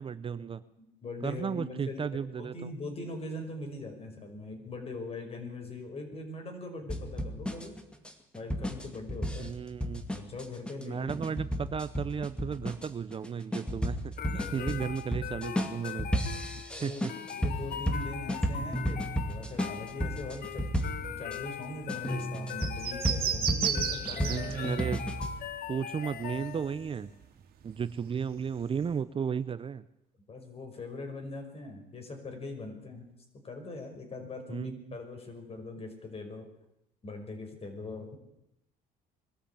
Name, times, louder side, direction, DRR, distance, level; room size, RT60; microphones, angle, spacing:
voice 1, 0.0-0.6 1.2-2.7 9.4-10.0 10.8-17.1 24.3-25.0 25.7-27.1 27.6-29.8 34.5-34.7, right 7 dB, 30° right, 14 dB, 0.7 m, -34 dB
voice 2, 0.8-7.7 8.3-9.5 10.1-11.1 14.3-14.7 16.8-17.0 17.3-24.5 30.3-33.1 33.4-36.5 37.0-38.2, left 2 dB, 35° left, 5 dB, 5.9 m, -41 dB
sound 1, 6.9-21.4 21.9-25.4, equal, 5° left, 2.3 m, -33 dB
sound 2, 14.2-27.0, left 9 dB, 60° left, 1.8 m, -41 dB
sound 3, 19.2-27.0 27.2-28.9, right 9 dB, 60° right, 2.9 m, -36 dB
22.0 x 13.5 x 8.7 m, 0.82 s
cardioid pair, 110°, 17 cm